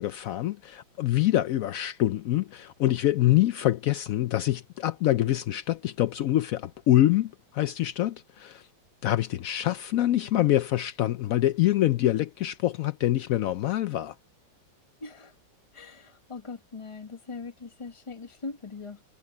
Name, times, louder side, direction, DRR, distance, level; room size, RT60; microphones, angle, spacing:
voice 1, 0.0-8.7 9.0-14.2, left 14 dB, 85° left, 0.7 m, -25 dB
voice 2, 15.0-15.3 15.7-19.0, left 4 dB, 20° left, 1.0 m, -41 dB
omnidirectional pair, 2.0 m